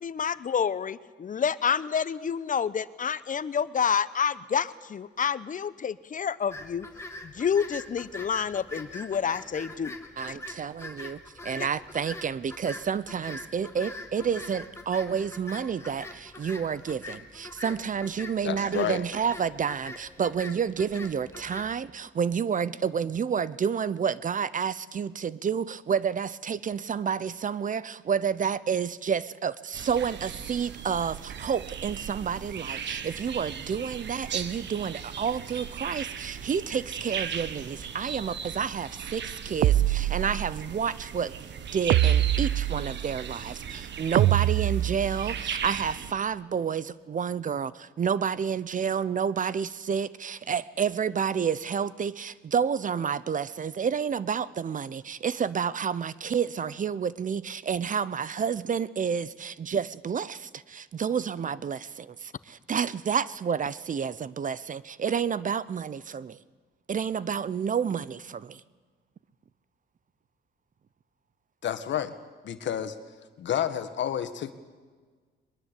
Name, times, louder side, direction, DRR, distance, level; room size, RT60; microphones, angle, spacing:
voice 1, 0.0-6.9 7.2-10.0 10.3-10.4, left 7 dB, 40° left, 16 dB, 1.0 m, -28 dB
sound 1, 6.5-21.7, left 2 dB, 15° left, 2.7 m, -43 dB
voice 2, 10.2-41.3 41.7-66.4 66.9-68.6, right 7 dB, 40° right, 19 dB, 0.8 m, -30 dB
voice 3, 18.4-19.0 71.6-72.1 72.4-73.0 73.4-74.5, left 10 dB, 65° left, 10 dB, 1.8 m, -30 dB
sound 2, 29.7-46.1, right 7 dB, 65° right, 1.6 m, -38 dB
sound 3, 39.6-40.7 41.9-43.2 44.1-45.4, right 13 dB, 80° right, 0.6 m, -24 dB
22.0 x 21.0 x 8.4 m, 1.5 s
cardioid pair, 90°, 20 cm